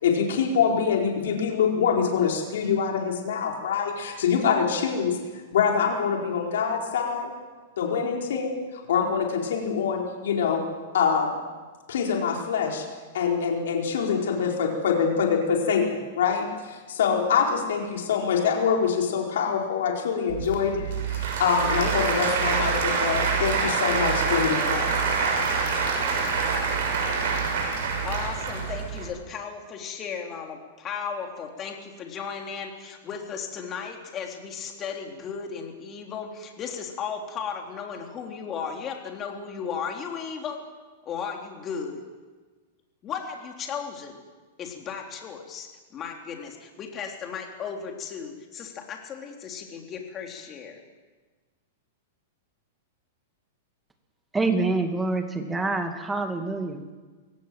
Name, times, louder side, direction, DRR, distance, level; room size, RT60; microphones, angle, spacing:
voice 1, 0.0-5.2 5.5-7.3 7.8-10.6 10.9-11.3 11.9-12.8 13.1-24.9, left 6 dB, 75° left, 0 dB, 4.5 m, -25 dB
Applause / Crowd, 20.3-29.1, right 5 dB, 65° right, 6.6 m, -26 dB
voice 2, 28.0-40.6 41.0-42.0 43.0-44.2 44.6-50.8, left 6 dB, 25° left, 2 dB, 3.8 m, -35 dB
voice 3, 54.3-56.9, right 3 dB, 10° right, 6 dB, 2.3 m, -26 dB
22.5 x 17.5 x 7.8 m, 1.4 s
hypercardioid pair, 135°, 0 cm